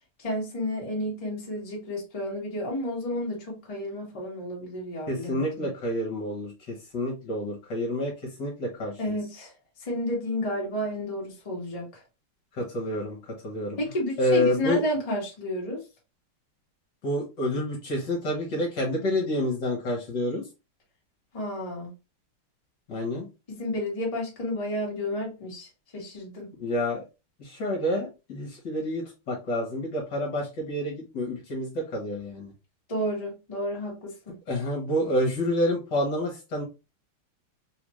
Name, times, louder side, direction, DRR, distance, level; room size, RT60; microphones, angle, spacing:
voice 1, 0.2-5.7 9.0-9.5 9.8-11.9 13.8-15.8 21.3-21.9 23.5-25.7 25.9-26.5 32.9-34.4, left 1 dB, 20° left, 1.1 m, -31 dB
voice 2, 5.1-8.1 8.4-9.2 12.6-13.2 13.4-13.8 14.2-14.8 17.0-20.4 22.9-23.3 26.6-27.0 27.4-32.5 34.5-36.6, left 1 dB, 60° left, 1.6 m, -28 dB
3.9 x 2.5 x 3.0 m
omnidirectional pair, 2.4 m